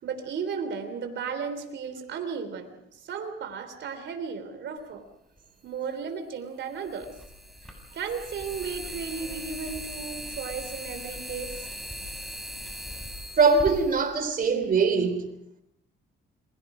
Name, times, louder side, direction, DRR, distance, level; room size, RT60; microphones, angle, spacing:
voice 1, 0.0-5.1 5.6-7.2 7.9-11.6, right 6 dB, 65° right, 3.6 m, -35 dB
sound 1, 5.4-5.5 6.8-14.8, equal, ahead, 7.3 m, -39 dB
voice 2, 13.4-15.3, right 4 dB, 45° right, 3.6 m, -22 dB
30.0 x 22.0 x 5.1 m
cardioid pair, 90°, 20 cm